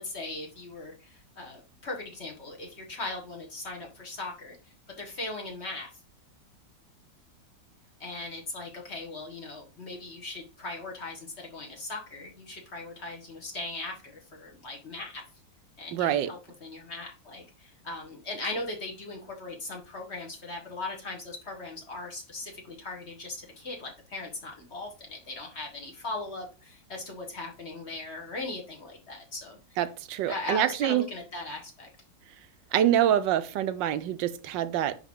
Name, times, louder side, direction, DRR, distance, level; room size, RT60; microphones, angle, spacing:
voice 1, 0.0-4.6 5.0-5.9 8.0-15.2 15.8-29.8 30.3-31.9, left 2 dB, 40° left, 1.8 m, -39 dB
voice 2, 15.9-16.3 29.8-31.1 32.7-35.0, right 11 dB, 90° right, 1.3 m, -26 dB
10.0 x 3.5 x 3.7 m
omnidirectional pair, 1.9 m